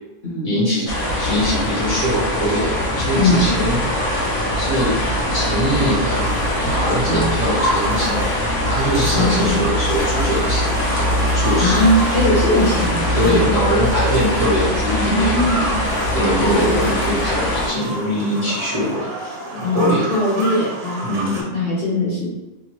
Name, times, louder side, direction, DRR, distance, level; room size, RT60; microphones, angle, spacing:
voice 1, 0.4-3.8 4.5-5.0 5.3-6.3 6.7-8.4 8.7-10.7 11.3-11.8 13.1-15.5 16.1-19.1 19.5-20.1 21.0-21.4, equal, 40° right, -9 dB, 0.5 m, -22 dB
sound 1, 0.9-17.7, left 1 dB, 75° left, 1.1 m, -21 dB
voice 2, 3.1-3.5 7.1-7.3 9.1-9.6 11.6-13.5 14.9-15.8 16.4-16.8 19.6-22.3, left 1 dB, 40° left, -8 dB, 0.9 m, -20 dB
sound 2, 3.4-21.4, right 1 dB, 60° right, 1.0 m, -30 dB
3.0 x 2.1 x 2.9 m, 1.1 s
omnidirectional pair, 1.5 m